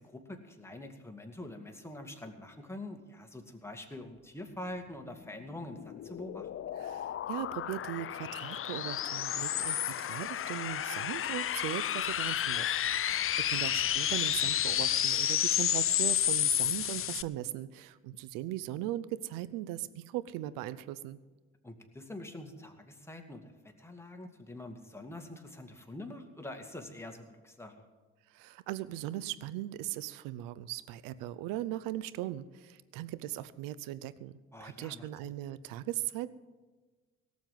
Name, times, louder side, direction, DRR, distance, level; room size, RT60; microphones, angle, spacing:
voice 1, 0.0-6.5 13.1-13.7 21.6-27.9 34.5-35.3, left 1 dB, 10° left, 3 dB, 2.3 m, -45 dB
sound 1, 5.4-17.2, left 10 dB, 40° left, 0.5 m, -31 dB
voice 2, 6.8-21.2 28.3-36.3, right 14 dB, 80° right, 16 dB, 0.6 m, -39 dB
17.5 x 7.3 x 7.8 m, 1.3 s
hypercardioid pair, 50°, 33 cm